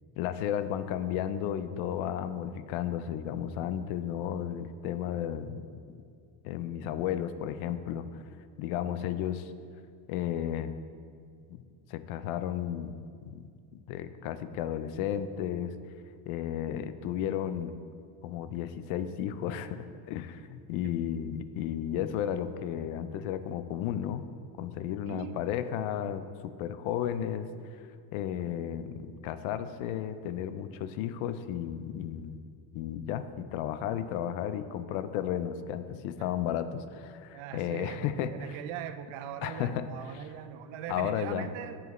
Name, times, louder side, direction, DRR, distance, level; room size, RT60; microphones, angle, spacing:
voice 1, 0.2-5.8 6.4-8.2 8.6-9.5 10.1-10.7 11.5-11.6 11.9-15.7 16.3-17.7 18.2-24.2 24.6-27.8 28.1-32.4 32.7-38.6 39.4-40.2 40.9-41.5, left 10 dB, 85° left, 12 dB, 0.6 m, -33 dB
voice 2, 25.1-25.4 36.2-36.3 37.3-41.8, right 10 dB, 80° right, 10 dB, 0.6 m, -41 dB
8.0 x 7.2 x 3.1 m, 2.2 s
cardioid pair, 170°, 49 cm